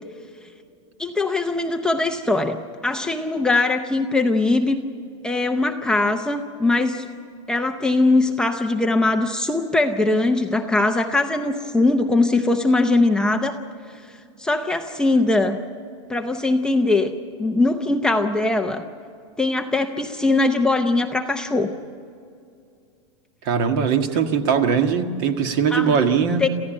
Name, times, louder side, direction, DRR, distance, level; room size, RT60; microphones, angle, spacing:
voice 1, 1.0-4.8 5.2-7.1 7.5-13.6 14.4-15.6 16.1-17.1 17.4-18.8 19.4-21.7 25.7-26.0 26.4-26.5, left 2 dB, 5° left, 4 dB, 0.6 m, -21 dB
voice 2, 23.4-26.4, right 6 dB, 45° right, 7 dB, 1.7 m, -20 dB
28.0 x 15.0 x 8.9 m, 2.4 s
supercardioid pair, 165°, 16 cm